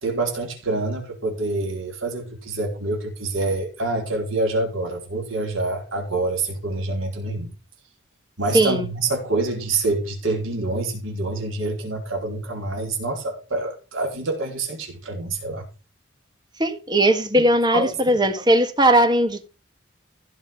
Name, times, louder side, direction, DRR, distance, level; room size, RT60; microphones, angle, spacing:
voice 1, 0.0-7.5 8.4-15.6 17.4-17.5 17.7-18.2, right 2 dB, 75° right, 4.7 m, -26 dB
voice 2, 8.5-8.9 16.6-19.5, right 1 dB, 20° right, 1.6 m, -18 dB
15.5 x 6.5 x 5.4 m
head